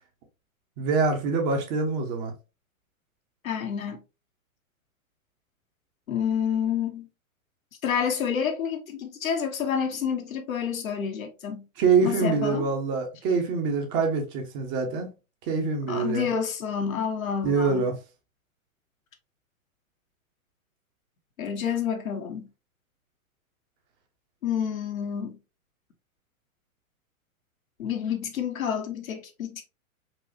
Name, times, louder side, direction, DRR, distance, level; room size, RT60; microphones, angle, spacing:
voice 1, 0.8-2.3 11.8-15.1 15.5-16.3 17.4-17.9, right 4 dB, 35° right, 1.1 m, -25 dB
voice 2, 3.4-4.0 6.1-7.1 7.8-11.6 12.0-12.7 15.9-17.9 21.4-22.5 24.4-25.4 27.8-29.6, left 7 dB, 70° left, 1.1 m, -29 dB
4.6 x 2.5 x 2.7 m
figure-of-eight pair, 105°, 42 cm